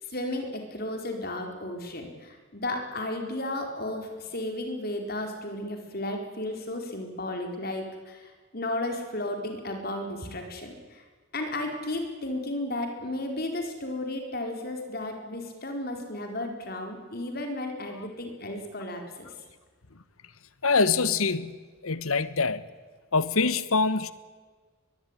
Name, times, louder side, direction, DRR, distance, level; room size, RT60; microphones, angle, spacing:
voice 1, 0.0-11.0 11.3-19.3, left 1 dB, 45° left, 4 dB, 4.5 m, -34 dB
voice 2, 20.6-21.5 21.8-22.6 23.1-24.1, left 4 dB, 90° left, 15 dB, 1.3 m, -24 dB
22.0 x 22.0 x 9.8 m, 1.4 s
head